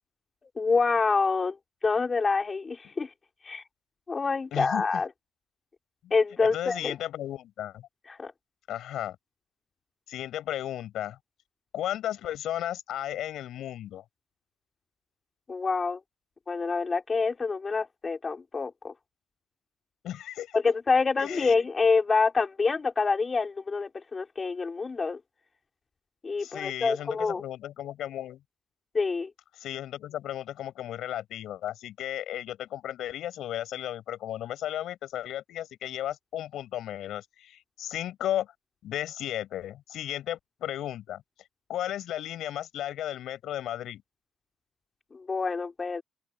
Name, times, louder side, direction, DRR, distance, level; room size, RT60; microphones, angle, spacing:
voice 1, 0.6-1.6 1.8-3.1 3.4-3.6 4.1-5.1 6.1-6.9 8.1-8.3 15.5-16.0 16.5-18.9 20.5-25.2 26.2-27.4 28.9-29.3 45.1-46.0, left 4 dB, 30° left, 4.7 m, -26 dB
voice 2, 4.5-4.8 6.0-6.1 6.4-7.9 8.7-9.2 10.1-11.2 11.7-14.0 20.0-20.6 21.2-21.6 26.4-28.4 29.6-38.5 38.8-41.2 41.7-44.0, left 12 dB, 80° left, 6.8 m, -34 dB
cardioid pair, 90°, 0 cm